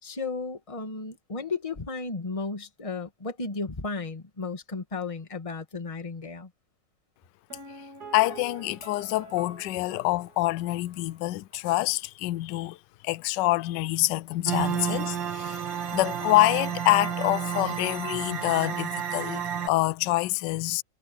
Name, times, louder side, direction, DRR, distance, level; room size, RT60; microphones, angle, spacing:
voice 1, 0.0-6.5, left 4 dB, 20° left, 1.7 m, -34 dB
Piano, 7.5-11.3 11.5-11.6, right 4 dB, 55° right, 2.9 m, -46 dB
voice 2, 8.1-12.8 13.0-15.6 15.9-20.8, left 18 dB, 75° left, 1.2 m, -26 dB
sound 1, 14.5-19.7, right 8 dB, 85° right, 2.5 m, -31 dB
omnidirectional pair, 2.0 m